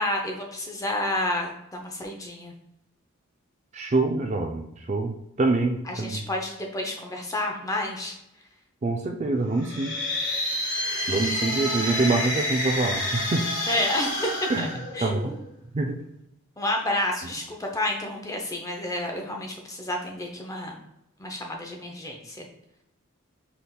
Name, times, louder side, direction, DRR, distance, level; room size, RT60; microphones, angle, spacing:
voice 1, 0.0-2.5 5.9-8.1 13.7-14.7 14.9-15.4 16.6-20.8 21.2-22.4, left 1 dB, 15° left, 1 dB, 0.6 m, -30 dB
voice 2, 3.7-6.2 8.8-10.0 11.1-13.5 14.5-14.7 15.0-15.3 15.7-16.0, right 3 dB, 30° right, 3 dB, 0.3 m, -25 dB
sound 1, 9.5-15.5, left 1 dB, 60° left, 1.4 m, -29 dB
5.7 x 3.4 x 2.3 m, 0.85 s
head